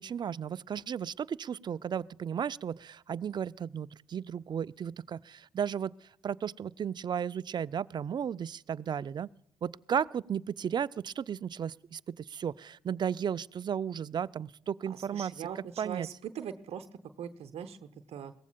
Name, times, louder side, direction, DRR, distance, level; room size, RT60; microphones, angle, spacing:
voice 1, 0.0-5.9 6.2-9.3 9.6-15.3 15.8-16.1, right 8 dB, 40° right, 19 dB, 0.4 m, -34 dB
voice 2, 14.9-16.9 17.2-18.3, right 8 dB, 60° right, 9 dB, 0.7 m, -41 dB
22.0 x 17.0 x 2.3 m, 0.78 s
hypercardioid pair, 45°, 12 cm